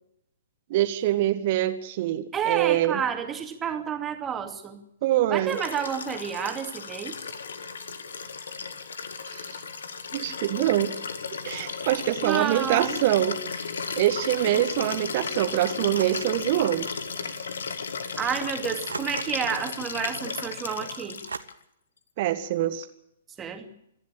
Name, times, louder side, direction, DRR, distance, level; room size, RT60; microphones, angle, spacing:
voice 1, 0.7-3.0 5.0-5.6 9.3-9.6 10.1-10.9 11.4-13.6 14.0-16.9 22.2-22.9, right 13 dB, 40° right, 10 dB, 1.7 m, -25 dB
voice 2, 2.3-4.8 5.3-7.2 12.2-13.0 18.2-21.2 23.4-23.7, right 8 dB, 15° right, 5 dB, 2.5 m, -30 dB
Liquid, 5.5-21.5 22.8-22.9, left 5 dB, 60° left, 1.9 m, -35 dB
sound 1, 15.9-16.4 17.5-17.6 18.9-19.6 21.3-21.4, right 4 dB, 70° right, 1.3 m, -37 dB
26.5 x 11.5 x 8.8 m, 0.78 s
figure-of-eight pair, 120°, 0 cm